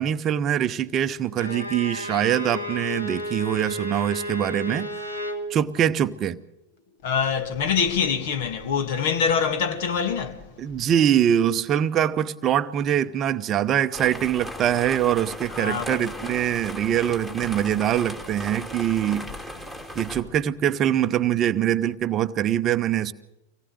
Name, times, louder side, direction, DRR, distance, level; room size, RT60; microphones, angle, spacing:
voice 1, 0.0-4.9 5.5-6.4 10.6-19.3 20.0-23.1, right 10 dB, 30° right, 0.8 m, -23 dB
Bowed string instrument, 1.4-5.5, left 1 dB, 85° left, 3.0 m, -32 dB
voice 2, 7.0-10.5 15.5-16.3, left 6 dB, 50° left, 2.2 m, -25 dB
sound 1, 13.9-20.2, equal, 10° left, 2.9 m, -37 dB
25.0 x 18.5 x 7.9 m
figure-of-eight pair, 90°, 0 cm